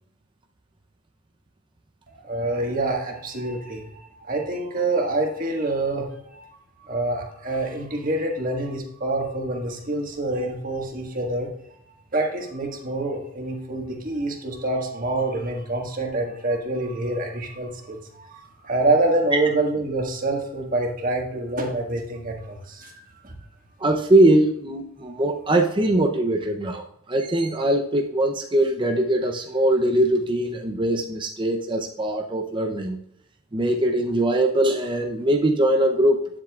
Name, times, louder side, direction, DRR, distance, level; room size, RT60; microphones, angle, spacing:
voice 1, 2.1-6.5 6.8-11.5 12.1-22.9 23.2-23.3, right 2 dB, 40° right, 1 dB, 1.5 m, -26 dB
voice 2, 23.8-33.0 33.5-36.4, right 1 dB, 20° right, 3 dB, 0.5 m, -21 dB
9.7 x 7.5 x 2.3 m, 0.73 s
head